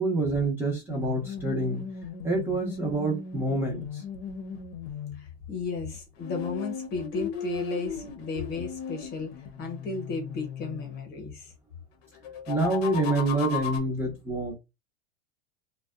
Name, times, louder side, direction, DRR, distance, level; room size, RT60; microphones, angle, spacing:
voice 1, 0.0-1.9 2.2-4.0 12.5-14.5, right 2 dB, 5° right, 0.6 m, -27 dB
sound 1, 0.9-5.2 6.2-11.1 12.2-13.8, left 7 dB, 70° left, 0.7 m, -36 dB
voice 2, 5.1-11.5, left 4 dB, 30° left, 0.9 m, -34 dB
2.5 x 2.2 x 2.3 m
supercardioid pair, 145°, 32 cm